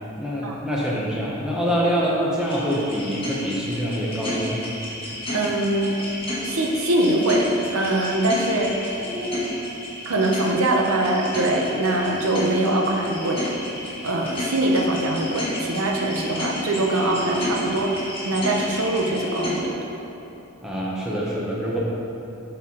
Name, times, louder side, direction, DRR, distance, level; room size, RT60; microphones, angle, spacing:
voice 1, 0.2-4.7 20.6-21.8, equal, 5° right, -6 dB, 0.7 m, -25 dB
sound 1, 2.4-19.6, left 1 dB, 25° left, 1.2 m, -31 dB
voice 2, 5.3-6.1 6.4-7.5 7.7-8.9 10.0-13.5 14.0-19.8, right 1 dB, 70° right, 0 dB, 0.8 m, -23 dB
7.9 x 4.6 x 3.6 m, 3.0 s
head